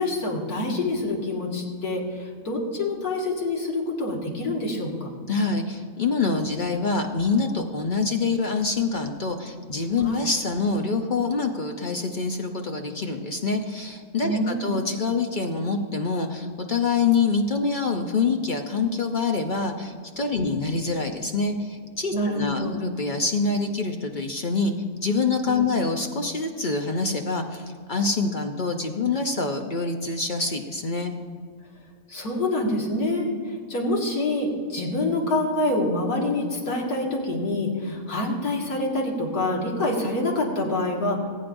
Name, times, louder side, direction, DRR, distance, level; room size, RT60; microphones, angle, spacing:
voice 1, 0.0-5.1 10.0-10.3 14.2-14.9 20.3-20.5 22.1-22.8 25.5-25.7 32.1-33.3 33.7-41.3, left 2 dB, 85° left, -2 dB, 2.4 m, -26 dB
voice 2, 5.3-24.7 25.0-31.1, left 4 dB, 50° left, 4 dB, 0.6 m, -26 dB
19.5 x 9.1 x 2.6 m, 2.1 s
omnidirectional pair, 1.6 m